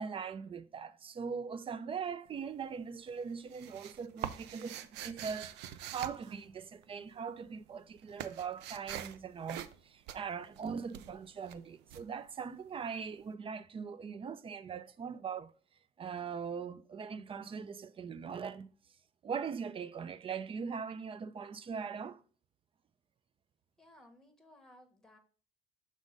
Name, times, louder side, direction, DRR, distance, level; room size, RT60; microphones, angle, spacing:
voice 1, 0.0-15.5 16.0-18.7 19.2-22.2, right 6 dB, 30° right, 0.4 m, -41 dB
sound 1, 2.3-2.8 3.1-7.1 7.4-13.0, right 11 dB, 85° right, 0.5 m, -45 dB
voice 2, 23.8-25.2, left 1 dB, ahead, 1.4 m, -59 dB
6.2 x 3.7 x 5.2 m
cardioid pair, 110°, 17 cm